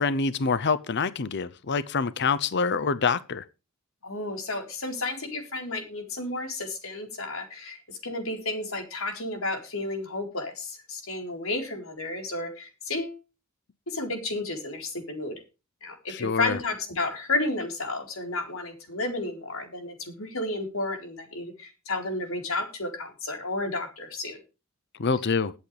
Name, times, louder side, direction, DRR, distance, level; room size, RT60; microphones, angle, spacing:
voice 1, 0.0-3.4 16.1-16.6 25.0-25.5, left 5 dB, 55° left, 0.7 m, -26 dB
voice 2, 4.0-13.2 13.9-15.3 15.8-24.4, left 2 dB, 75° left, 4.2 m, -32 dB
21.0 x 8.3 x 3.3 m
head